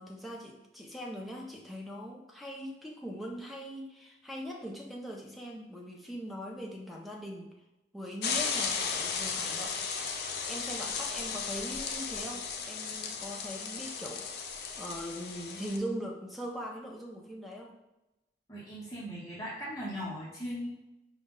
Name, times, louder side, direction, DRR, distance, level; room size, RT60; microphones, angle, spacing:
voice 1, 0.0-7.5 7.9-9.8 10.5-14.3 14.8-17.7, equal, ahead, -1 dB, 0.4 m, -41 dB
sound 1, 8.2-15.8, left 5 dB, 65° left, 0.4 m, -35 dB
voice 2, 18.5-20.7, equal, 20° left, -8 dB, 0.8 m, -38 dB
4.9 x 2.1 x 3.6 m, 0.97 s
head